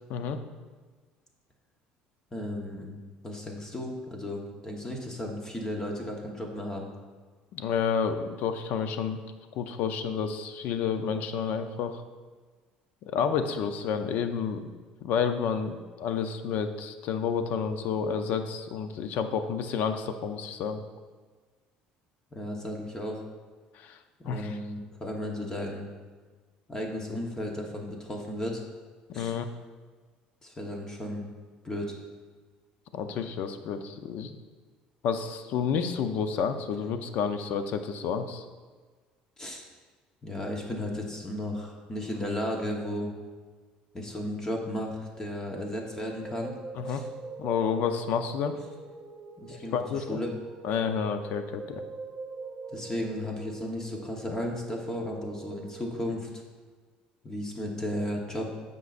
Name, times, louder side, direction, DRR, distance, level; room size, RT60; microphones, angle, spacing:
voice 1, 2.3-3.0 3.2-6.9 22.3-23.2 24.2-25.9 26.7-28.6 29.1-29.3 30.4-31.3 31.6-31.9 39.4-39.6 40.2-43.1 43.9-46.6 46.9-47.1 49.4-50.3 52.7-56.3 57.2-58.5, left 1 dB, 20° left, 1 dB, 1.2 m, -34 dB
voice 2, 7.5-9.2 9.5-11.9 13.1-14.7 15.0-20.8 23.7-24.0 24.2-24.6 29.1-29.5 32.9-34.4 35.0-38.4 46.8-47.0 47.4-48.6 49.5-50.2 50.6-51.8, left 6 dB, 65° left, 8 dB, 0.6 m, -30 dB
sound 1, 45.8-56.1, right 4 dB, 35° right, 0.6 m, -43 dB
14.5 x 5.4 x 2.6 m, 1.4 s
cardioid pair, 105°, 3 cm